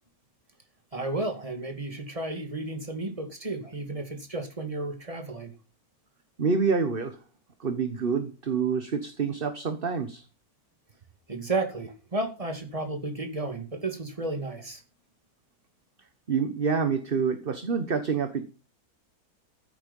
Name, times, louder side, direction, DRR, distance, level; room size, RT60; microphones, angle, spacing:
voice 1, 0.9-5.5 11.3-14.8, right 2 dB, 25° right, 5 dB, 2.4 m, -33 dB
voice 2, 6.4-7.2 7.6-10.2 16.3-18.4, right 5 dB, 40° right, 9 dB, 1.3 m, -27 dB
14.5 x 8.6 x 5.4 m, 0.34 s
omnidirectional pair, 1.6 m